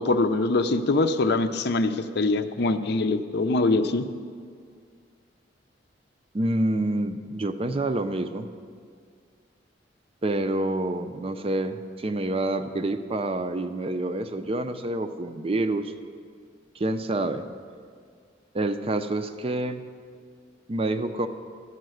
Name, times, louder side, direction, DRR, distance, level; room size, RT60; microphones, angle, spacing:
voice 1, 0.0-4.1, left 2 dB, 60° left, 9 dB, 0.5 m, -23 dB
voice 2, 6.3-8.5 10.2-15.9 16.8-17.5 18.5-19.8 20.7-21.3, right 2 dB, 30° right, 9 dB, 0.5 m, -27 dB
13.0 x 5.7 x 7.7 m, 2.1 s
head